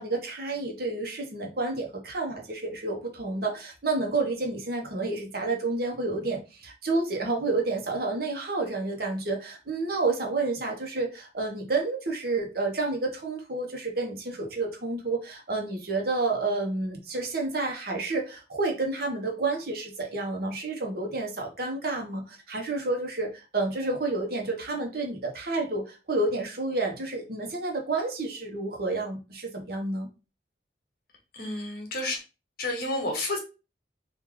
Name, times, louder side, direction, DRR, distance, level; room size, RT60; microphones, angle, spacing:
voice 1, 0.0-30.1, right 3 dB, 55° right, 2 dB, 1.1 m, -30 dB
voice 2, 31.3-32.2 32.6-33.4, left 2 dB, 55° left, 2 dB, 1.2 m, -30 dB
3.1 x 2.6 x 3.8 m, 0.30 s
head